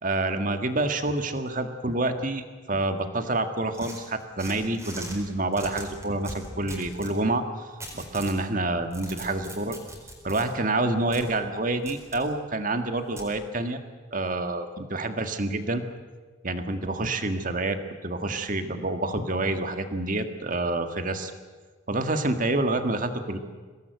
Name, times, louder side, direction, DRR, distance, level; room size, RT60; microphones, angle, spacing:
voice 1, 0.0-7.7 7.9-9.8 10.2-13.8 14.1-15.8 16.4-21.3 21.9-23.4, right 2 dB, 40° right, 7 dB, 1.7 m, -28 dB
sound 1, 3.7-5.2 5.5-7.2 7.8-8.4 8.8-10.4 11.1-11.2 11.9-12.2 13.2-13.3, right 1 dB, 15° right, 4.3 m, -40 dB
24.5 x 18.5 x 8.1 m, 1.4 s
head